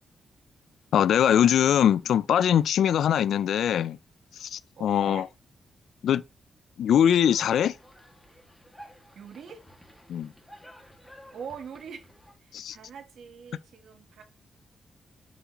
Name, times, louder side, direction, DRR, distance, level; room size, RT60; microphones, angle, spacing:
voice 1, 0.9-4.0 4.4-5.2 6.0-6.2 6.8-7.7 10.1-10.3 12.5-12.8, left 9 dB, 75° left, 0.3 m, -22 dB
voice 2, 4.8-5.3 9.1-9.6 11.3-12.1 12.4-14.2, right 7 dB, 60° right, 1.1 m, -43 dB
sound 1, 6.9-12.3, equal, 5° left, 1.9 m, -52 dB
8.1 x 5.7 x 3.0 m
wide cardioid pair, 170°, 0 cm